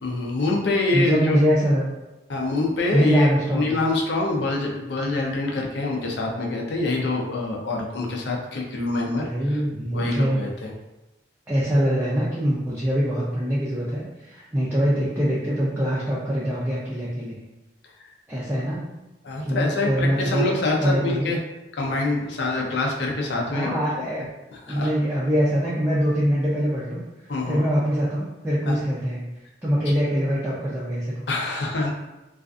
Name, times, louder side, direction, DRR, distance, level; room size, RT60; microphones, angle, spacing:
voice 1, 0.0-1.4 2.3-9.6 9.9-10.7 18.0-18.1 19.2-21.4 21.7-23.7 24.2-24.9 27.3-27.6 28.7-28.8 31.3-31.9, left 2 dB, 70° left, 0 dB, 0.5 m, -26 dB
voice 2, 0.9-1.9 2.9-3.7 9.2-10.4 11.5-17.4 18.3-18.9 19.4-20.4 20.8-21.3 22.6-22.7 23.4-24.2 24.7-29.2 29.6-31.3, equal, 10° right, -9 dB, 0.3 m, -23 dB
2.4 x 2.3 x 2.4 m, 1.0 s
head